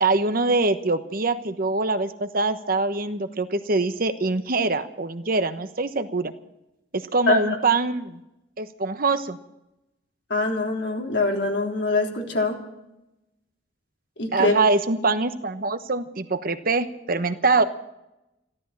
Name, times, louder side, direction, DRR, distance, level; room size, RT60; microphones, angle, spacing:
voice 1, 0.0-6.3 6.9-8.2 8.6-9.4 14.3-17.6, right 3 dB, 50° right, 9 dB, 1.1 m, -24 dB
voice 2, 10.3-12.6 14.2-14.6, left 3 dB, 70° left, 0 dB, 3.5 m, -23 dB
14.5 x 13.0 x 7.5 m, 0.90 s
head